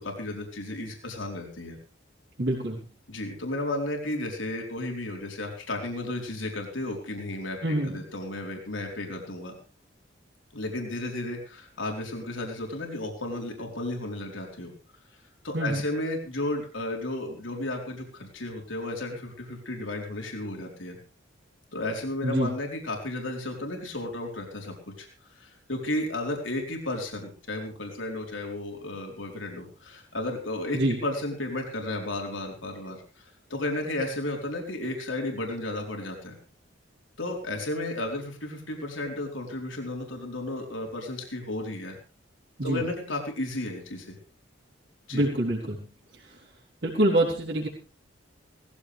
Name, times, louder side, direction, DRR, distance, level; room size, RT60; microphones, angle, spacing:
voice 1, 0.0-1.8 3.1-9.5 10.5-14.7 15.4-21.0 21.7-25.1 25.4-33.2 33.5-36.4 37.2-42.0 42.6-44.2 45.1-45.2, left 1 dB, 80° left, 1 dB, 4.3 m, -33 dB
voice 2, 2.4-2.8 7.6-8.0 15.5-15.9 22.2-22.5 30.7-31.0 42.6-42.8 45.1-45.8 46.1-46.4 46.8-47.7, right 1 dB, 60° right, -6 dB, 3.9 m, -26 dB
19.0 x 15.5 x 3.4 m, 0.37 s
head